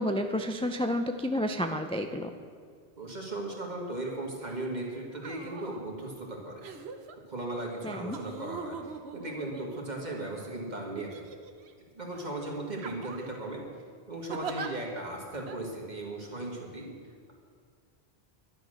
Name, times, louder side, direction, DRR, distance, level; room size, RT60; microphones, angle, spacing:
voice 1, 0.0-2.3 7.8-8.2, equal, 10° left, 6 dB, 0.3 m, -30 dB
voice 2, 3.0-6.6 7.3-11.2 11.9-13.6 14.1-16.9, right 2 dB, 45° right, -1 dB, 2.2 m, -37 dB
sound 1, 4.5-4.7 5.1-5.8 6.6-7.2 8.1-10.2 11.0-11.7 12.1-12.3 12.8-13.4 14.3-14.7 15.5-15.6, right 5 dB, 80° right, 1.1 m, -41 dB
11.0 x 11.0 x 6.4 m, 2.1 s
omnidirectional pair, 1.1 m